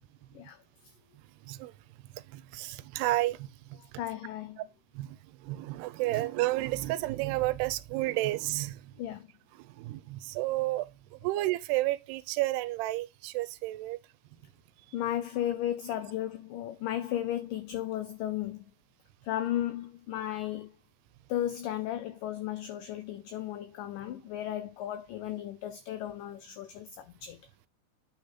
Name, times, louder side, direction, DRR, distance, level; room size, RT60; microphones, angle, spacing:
voice 1, 0.3-0.9 3.7-4.7 6.1-6.3 9.0-9.3 14.9-18.7 19.2-20.7 21.3-27.4, left 12 dB, 85° left, 1.9 m, -35 dB
voice 2, 2.5-3.4 5.0-5.1 5.5-8.8 9.8-10.8 11.2-14.0, right 17 dB, 85° right, 2.7 m, -31 dB
9.1 x 5.1 x 4.2 m
omnidirectional pair, 4.7 m